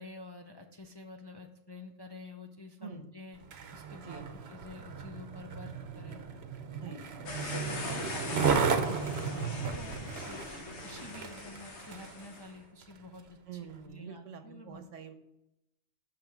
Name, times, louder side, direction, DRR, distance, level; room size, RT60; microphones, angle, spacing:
voice 1, 0.0-3.4 3.7-6.4 6.7-14.8, left 2 dB, 35° left, 3 dB, 0.4 m, -49 dB
Skateboard, 3.4-12.2 12.8-12.9, right 6 dB, 60° right, 1.0 m, -34 dB
sound 1, 7.3-12.5, left 3 dB, 65° left, 1.5 m, -41 dB
voice 2, 13.5-15.1, right 7 dB, 80° right, 8 dB, 1.2 m, -45 dB
6.3 x 6.0 x 5.8 m, 0.86 s
omnidirectional pair, 1.3 m